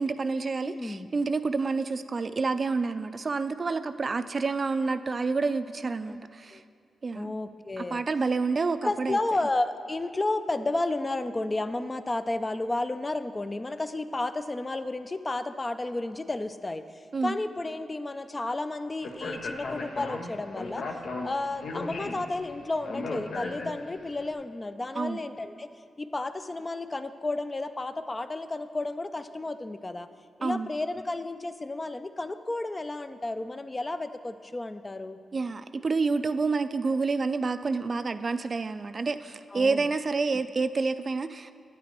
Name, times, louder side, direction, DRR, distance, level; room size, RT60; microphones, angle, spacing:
voice 1, 0.0-6.6 7.0-7.3 7.8-9.2 17.1-17.4 25.0-25.2 30.4-30.7 35.3-41.5, right 4 dB, 45° right, 11 dB, 0.3 m, -28 dB
voice 2, 0.6-1.1 6.1-6.2 6.5-6.6 7.1-8.0 8.8-20.8 21.2-30.1 30.4-35.2 39.5-39.8, left 2 dB, 25° left, 10 dB, 0.4 m, -32 dB
Speech, 19.0-24.1, left 3 dB, 70° left, 0.7 m, -36 dB
9.2 x 9.2 x 3.0 m, 2.2 s
cardioid pair, 70°, 0 cm